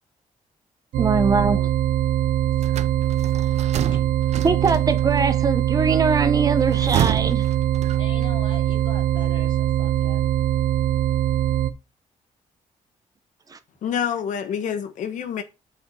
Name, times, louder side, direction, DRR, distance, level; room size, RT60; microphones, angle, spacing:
sound 1, 0.9-11.7, right 11 dB, 90° right, 0.9 m, -22 dB
voice 1, 1.0-1.6 4.4-7.5 13.5-13.6, right 4 dB, 25° right, 1.0 m, -22 dB
sound 2, 2.6-5.2 6.5-8.3, right 9 dB, 55° right, 0.8 m, -29 dB
voice 2, 8.0-10.3, left 3 dB, 35° left, 2.8 m, -41 dB
voice 3, 13.8-15.4, left 8 dB, 70° left, 1.2 m, -27 dB
8.4 x 5.6 x 5.5 m
cardioid pair, 155°, 14 cm